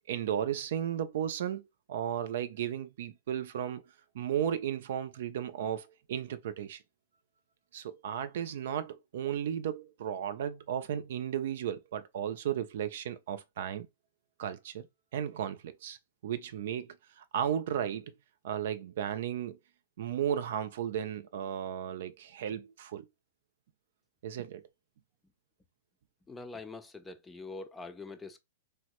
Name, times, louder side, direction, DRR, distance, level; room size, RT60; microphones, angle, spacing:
voice 1, 0.1-3.8 4.1-6.8 7.7-13.9 14.4-14.9 15.1-16.0 16.2-18.1 18.4-19.6 20.0-23.1 24.2-24.6, right 9 dB, 65° right, 0.4 m, -34 dB
voice 2, 26.3-28.4, left 3 dB, 10° left, 0.4 m, -44 dB
3.4 x 2.1 x 2.9 m
hypercardioid pair, 125°, 0 cm